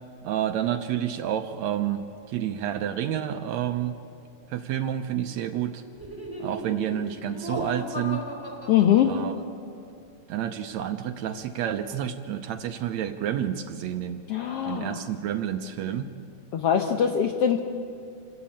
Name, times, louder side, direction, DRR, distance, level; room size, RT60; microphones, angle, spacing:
voice 1, 0.2-4.0 4.5-5.8 6.4-8.2 9.1-9.3 10.3-14.2 14.7-16.1, right 10 dB, 75° right, 7 dB, 2.0 m, -29 dB
Laughter, 6.0-9.7, equal, 10° right, 3.0 m, -36 dB
voice 2, 8.7-9.1 14.3-15.0 16.5-17.6, left 9 dB, 65° left, 4 dB, 1.7 m, -22 dB
28.5 x 13.0 x 8.6 m, 2.4 s
omnidirectional pair, 3.4 m